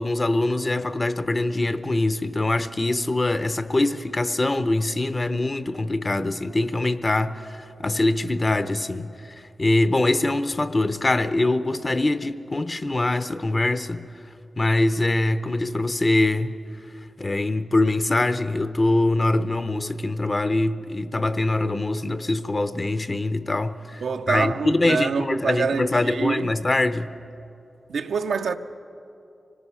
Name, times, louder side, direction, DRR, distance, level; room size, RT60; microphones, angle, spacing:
voice 1, 0.0-9.1 9.6-14.0 14.6-16.5 17.2-24.0 24.3-27.1, left 2 dB, 35° left, 0.8 m, -23 dB
voice 2, 24.0-26.5 27.9-28.6, right 5 dB, 90° right, 0.6 m, -26 dB
25.0 x 19.5 x 5.7 m
cardioid pair, 60°, 0 cm